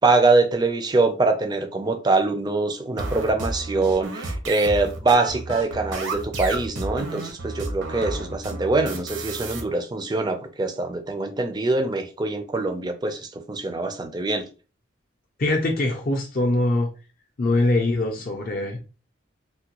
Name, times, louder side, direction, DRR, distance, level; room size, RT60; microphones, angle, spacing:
voice 1, 0.0-14.4, right 3 dB, 20° right, 0.4 m, -23 dB
sound 1, 3.0-9.6, right 2 dB, 70° right, 0.8 m, -31 dB
voice 2, 15.4-16.9 17.4-18.8, left 2 dB, 45° left, 0.5 m, -22 dB
3.5 x 2.2 x 2.9 m
head